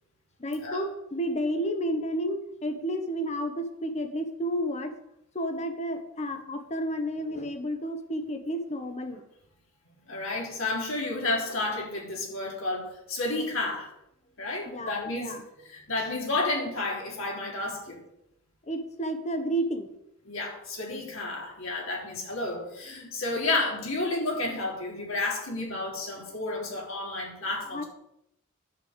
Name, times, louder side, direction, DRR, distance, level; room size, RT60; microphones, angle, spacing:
voice 1, 0.4-4.9 5.3-9.2 14.7-15.4 18.7-19.9 27.7-27.8, equal, 35° left, 7 dB, 1.3 m, -31 dB
voice 2, 10.1-13.9 14.4-15.4 15.7-18.0 20.3-27.8, left 2 dB, 75° left, -1 dB, 3.7 m, -31 dB
11.0 x 5.6 x 8.1 m, 0.82 s
head